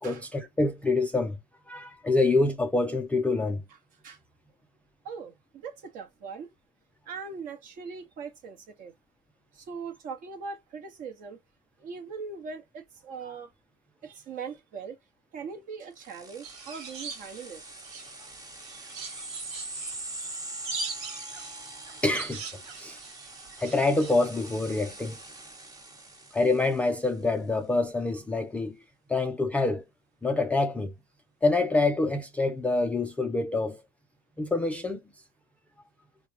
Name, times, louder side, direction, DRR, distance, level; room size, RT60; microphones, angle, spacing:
voice 1, 0.0-1.4 1.7-3.6 22.0-22.4 22.8-23.0 23.6-25.2 26.3-28.8 29.1-29.8 30.2-30.9 31.4-33.8 34.4-35.0, left 3 dB, 5° left, 0.3 m, -26 dB
voice 2, 5.0-6.5 7.1-8.9 9.5-11.4 11.8-13.5 14.0-15.0 15.3-17.6 18.7-18.8 23.1-23.3, right 5 dB, 40° right, 0.9 m, -40 dB
sound 1, 16.0-27.1, right 2 dB, 20° right, 0.9 m, -43 dB
sound 2, 16.4-18.3 18.6-24.3, right 4 dB, 65° right, 1.3 m, -41 dB
3.2 x 2.1 x 2.7 m
supercardioid pair, 125°, 20 cm